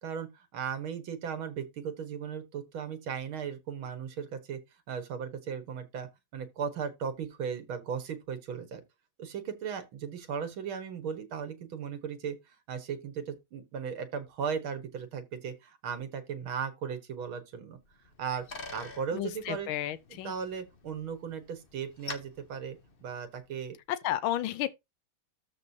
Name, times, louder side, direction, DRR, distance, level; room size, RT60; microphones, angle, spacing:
voice 1, 0.0-4.6 4.9-8.8 9.2-17.8 18.2-18.5 18.7-19.7 20.1-23.8, right 7 dB, 85° right, 2.2 m, -37 dB
Bicycle, 17.8-23.6, left 3 dB, 35° left, 1.1 m, -48 dB
voice 2, 19.1-20.3 24.0-24.7, left 12 dB, 85° left, 1.5 m, -32 dB
13.5 x 5.0 x 2.8 m
omnidirectional pair, 2.2 m